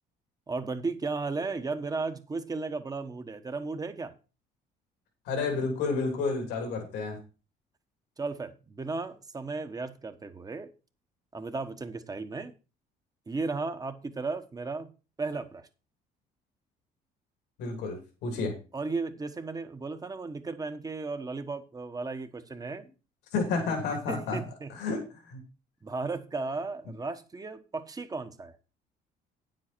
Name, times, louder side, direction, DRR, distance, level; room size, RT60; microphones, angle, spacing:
voice 1, 0.5-4.1 8.2-10.7 11.3-12.5 13.3-14.9 15.2-15.7 18.7-22.8 24.1-24.7 25.8-28.5, right 3 dB, 20° right, 1.2 m, -35 dB
voice 2, 5.2-7.2 17.6-18.5 23.3-24.4 24.7-25.4, left 4 dB, 90° left, 3.2 m, -30 dB
9.5 x 7.7 x 4.5 m
cardioid pair, 110°, 17 cm